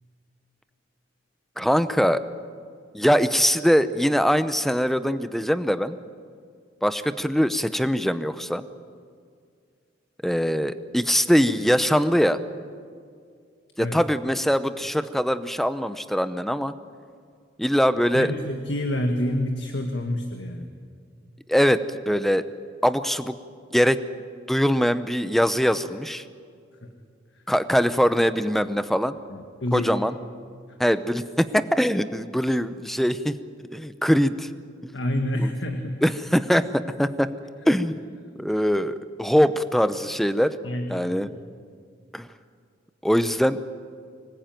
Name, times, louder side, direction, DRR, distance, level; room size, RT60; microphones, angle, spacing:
voice 1, 1.6-2.2 2.9-6.0 6.8-8.6 10.2-12.4 13.8-16.7 17.6-18.3 21.5-22.4 22.8-23.4 23.7-24.0 24.5-26.2 27.5-29.1 29.7-30.1 30.8-33.4 33.7-34.5 34.8-34.9 35.4-35.5 36.0-37.3 37.7-38.0 38.4-40.6 40.9-41.3 42.1-42.3 43.0-43.6, equal, ahead, 12 dB, 0.8 m, -22 dB
voice 2, 18.1-20.7 26.8-26.9 27.4-27.5 29.3-30.0 30.7-30.8 34.9-36.0 40.6-41.3, left 1 dB, 70° left, 4 dB, 1.7 m, -28 dB
25.0 x 20.0 x 9.2 m, 2.2 s
head